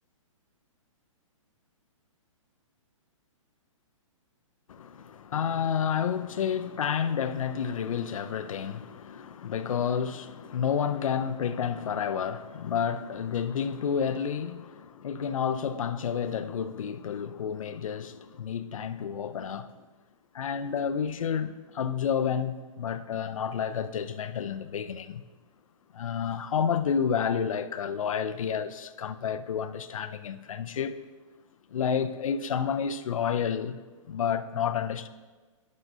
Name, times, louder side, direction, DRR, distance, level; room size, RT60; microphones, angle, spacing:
voice 1, 4.7-19.7 20.3-25.2 25.9-31.0 31.7-33.8 34.1-35.1, left 7 dB, 75° left, 0.6 m, -30 dB
12.0 x 10.5 x 2.7 m
hypercardioid pair, 150°, 17 cm